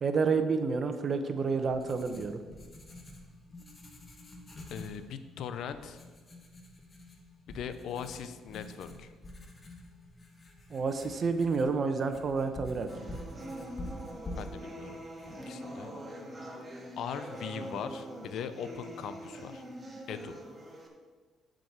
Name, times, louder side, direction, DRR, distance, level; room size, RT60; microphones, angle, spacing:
voice 1, 0.0-2.4 10.7-13.2, right 4 dB, 45° right, 8 dB, 0.9 m, -29 dB
Writing, 1.2-16.0, left 1 dB, 30° left, 1.6 m, -48 dB
voice 2, 4.7-6.0 7.5-9.1 14.4-15.0 15.5-15.9 17.0-19.6 20.1-20.4, left 7 dB, 70° left, 11 dB, 0.7 m, -40 dB
sound 1, 12.9-20.9, right 1 dB, 25° right, 2.0 m, -44 dB
7.6 x 5.1 x 7.4 m, 1.4 s
supercardioid pair, 75°, 0 cm